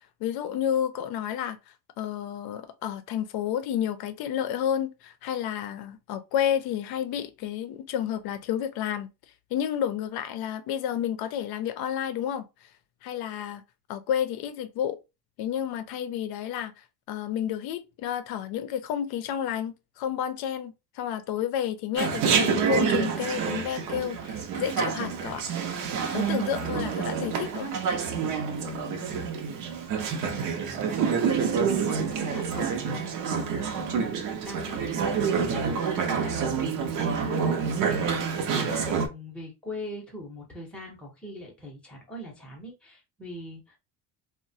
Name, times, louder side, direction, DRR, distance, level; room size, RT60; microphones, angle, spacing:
voice 1, 0.2-9.1 9.5-12.4 13.0-13.6 13.9-15.0 15.4-16.7 17.1-25.4 26.1-27.7, left 10 dB, 70° left, 0.6 m, -30 dB
Chatter, 22.0-39.1, right 6 dB, 55° right, 0.6 m, -28 dB
voice 2, 28.6-29.7 30.0-31.3 31.9-34.1 34.4-38.3 38.5-43.8, left 1 dB, 5° left, 0.7 m, -41 dB
3.0 x 2.1 x 2.6 m
cardioid pair, 140°, 39 cm